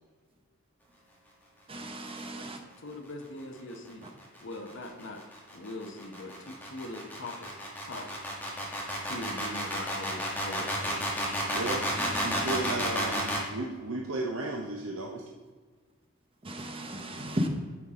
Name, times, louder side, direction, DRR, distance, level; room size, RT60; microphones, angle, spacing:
voice 1, 1.7-2.6 11.9-12.8 16.4-17.5, equal, 25° right, 4 dB, 0.9 m, -35 dB
voice 2, 2.8-4.1 4.4-5.2 5.5-7.5 7.8-8.1 9.0-11.0, left 2 dB, 60° left, 3 dB, 0.9 m, -41 dB
sound 1, 4.2-13.5, equal, 10° left, 1.5 m, -32 dB
voice 3, 11.5-11.8 12.2-15.2, right 2 dB, 75° right, 1 dB, 0.8 m, -34 dB
9.1 x 5.8 x 3.7 m, 1.5 s
head